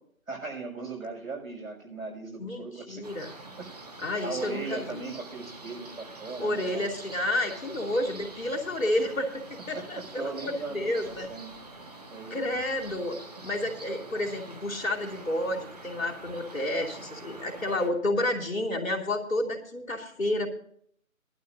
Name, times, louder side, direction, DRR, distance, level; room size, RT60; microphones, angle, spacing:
voice 1, 0.3-3.1 3.6-3.7 4.2-6.9 9.7-11.6 12.1-12.6, right 4 dB, 75° right, 0 dB, 6.5 m, -38 dB
voice 2, 2.4-3.3 4.0-5.0 6.4-11.3 12.3-20.5, left 1 dB, 70° left, 1 dB, 2.9 m, -30 dB
sound 1, 3.0-17.9, right 2 dB, 30° right, 1.4 m, -46 dB
18.5 x 12.0 x 2.6 m, 0.63 s
figure-of-eight pair, 165°, 41 cm